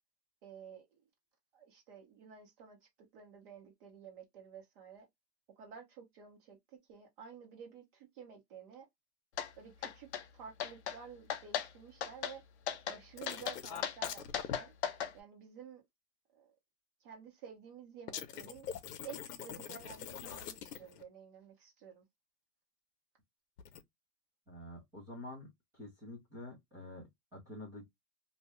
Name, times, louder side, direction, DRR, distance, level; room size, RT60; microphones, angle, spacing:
voice 1, 0.4-1.0 1.5-5.1 5.6-8.9 9.5-10.1 10.3-12.4 12.9-14.7 15.1-15.8 16.3-16.5 17.0-18.7 19.0-22.0, right 7 dB, 35° right, 1.1 m, -52 dB
sound 1, 9.4-9.5 9.8-10.2 10.6-11.0 11.3-11.7 12.0-12.4 12.7-13.0 13.3-15.1, left 9 dB, 45° left, 0.6 m, -36 dB
sound 2, 13.2-14.6 18.1-21.0 23.6-23.8, left 8 dB, 80° left, 0.8 m, -44 dB
voice 2, 24.5-27.8, left 1 dB, 5° right, 0.6 m, -48 dB
2.6 x 2.2 x 3.0 m
supercardioid pair, 165°, 46 cm